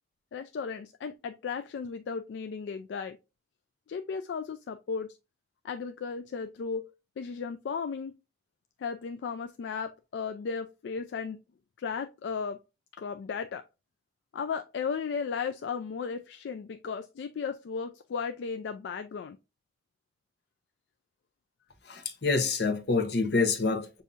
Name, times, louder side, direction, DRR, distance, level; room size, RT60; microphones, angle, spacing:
voice 1, 0.3-3.2 3.9-5.2 5.6-6.9 7.2-8.1 8.8-11.4 11.8-12.6 13.0-13.6 14.3-19.4, left 5 dB, 80° left, 0.3 m, -35 dB
voice 2, 21.9-24.0, left 4 dB, 65° left, 0.8 m, -27 dB
6.8 x 2.7 x 2.4 m
head